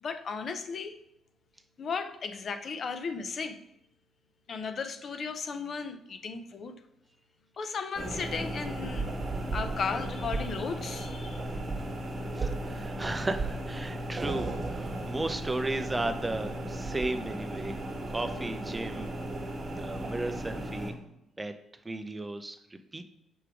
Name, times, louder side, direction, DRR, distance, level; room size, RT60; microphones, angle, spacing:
voice 1, 0.0-1.0 1.8-3.6 4.5-6.7 7.6-9.1 9.5-11.4, left 5 dB, 50° left, 0.5 m, -35 dB
sound 1, 7.9-20.9, right 1 dB, 35° right, 1.6 m, -35 dB
voice 2, 12.4-17.7 18.1-19.1 19.8-20.9 21.4-21.5 21.8-22.6 22.9-23.0, right 2 dB, 15° right, 0.5 m, -34 dB
6.2 x 3.3 x 4.6 m
cardioid pair, 90°, 0 cm